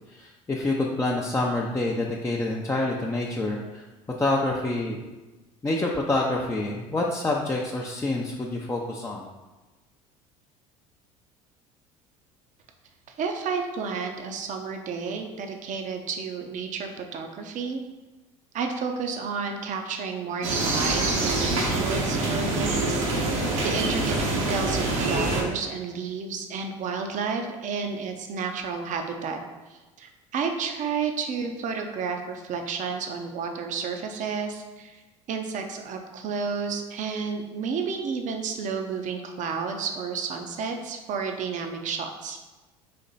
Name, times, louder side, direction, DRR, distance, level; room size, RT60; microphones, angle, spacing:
voice 1, 0.1-3.8 4.2-5.0 5.6-9.2, left 2 dB, 15° left, -3 dB, 0.5 m, -27 dB
voice 2, 13.2-17.8 18.5-29.4 29.7-35.0 35.3-42.4, right 5 dB, 45° right, 4 dB, 0.7 m, -31 dB
sound 1, 20.4-25.4, right 2 dB, 70° right, 1.1 m, -25 dB
4.2 x 2.9 x 4.0 m, 1.2 s
hypercardioid pair, 70°, 17 cm